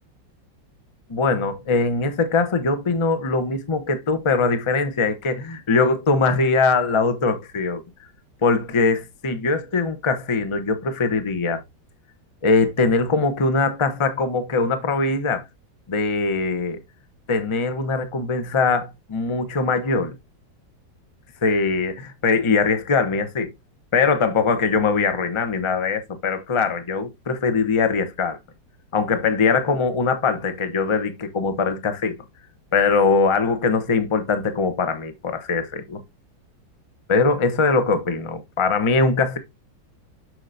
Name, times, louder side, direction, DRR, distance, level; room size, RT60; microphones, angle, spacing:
voice 1, 1.1-7.8 8.4-11.6 12.4-15.4 15.9-16.8 17.3-20.2 21.4-23.5 23.9-28.4 28.9-32.1 32.7-36.0 37.1-39.4, left 4 dB, 25° left, 0.6 m, -21 dB
7.7 x 6.6 x 2.7 m
omnidirectional pair, 2.1 m